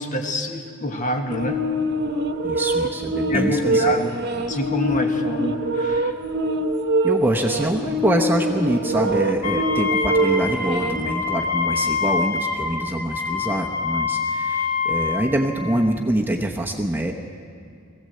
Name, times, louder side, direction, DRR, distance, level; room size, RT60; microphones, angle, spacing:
voice 1, 0.0-1.6 3.3-4.1 4.5-6.1, left 1 dB, 35° left, 4 dB, 1.6 m, -26 dB
sound 1, 1.3-11.1, right 1 dB, 50° right, 1.1 m, -24 dB
voice 2, 2.4-3.8 7.0-17.1, right 1 dB, 10° right, 1 dB, 0.9 m, -25 dB
Wind instrument woodwind instrument, 9.4-15.3, left 5 dB, 60° left, 3.7 m, -25 dB
20.5 x 16.5 x 7.8 m, 2.3 s
head